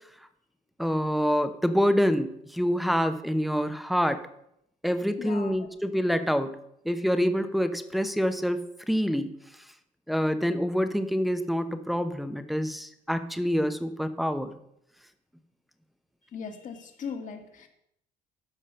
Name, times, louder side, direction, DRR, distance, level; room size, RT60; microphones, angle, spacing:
voice 1, 0.8-4.2 4.8-6.5 6.8-9.3 10.1-14.5, equal, ahead, 9 dB, 0.8 m, -26 dB
voice 2, 5.2-5.7 16.3-17.7, left 6 dB, 50° left, 4 dB, 1.8 m, -38 dB
13.0 x 5.4 x 5.6 m, 0.76 s
cardioid pair, 110°, 17 cm